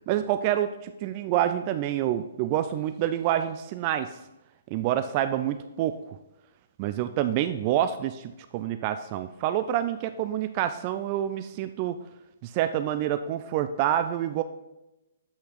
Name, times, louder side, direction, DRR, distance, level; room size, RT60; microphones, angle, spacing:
voice 1, 0.1-4.2 4.7-6.0 6.8-12.0 12.4-14.4, right 11 dB, 35° right, 10 dB, 0.4 m, -27 dB
8.1 x 6.3 x 3.9 m, 0.96 s
figure-of-eight pair, 125°, 0 cm